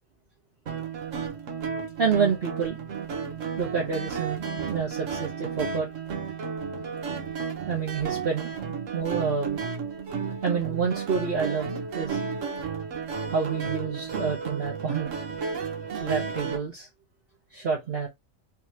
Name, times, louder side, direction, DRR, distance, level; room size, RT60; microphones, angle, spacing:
sound 1, 0.7-16.6, right 6 dB, 90° right, 1.4 m, -33 dB
voice 1, 2.0-2.8 3.6-5.9 7.7-8.5 8.9-9.7 10.4-12.2 13.3-15.1 15.9-16.9 17.5-18.1, right 6 dB, 55° right, 1.2 m, -28 dB
4.1 x 3.2 x 2.8 m
omnidirectional pair, 1.3 m